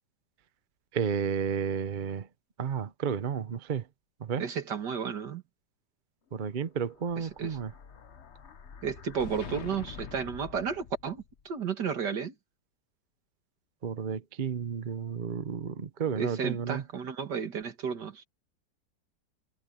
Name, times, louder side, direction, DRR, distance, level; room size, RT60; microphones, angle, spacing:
voice 1, 0.9-2.3 2.6-3.8 4.2-4.4 6.3-7.7 13.8-16.8, right 7 dB, 40° right, 0.8 m, -32 dB
voice 2, 4.4-5.4 7.2-7.6 8.8-12.3 16.2-18.2, right 6 dB, 75° right, 2.5 m, -33 dB
Explosion, 6.8-11.4, left 7 dB, 45° left, 1.2 m, -45 dB
omnidirectional pair, 1.8 m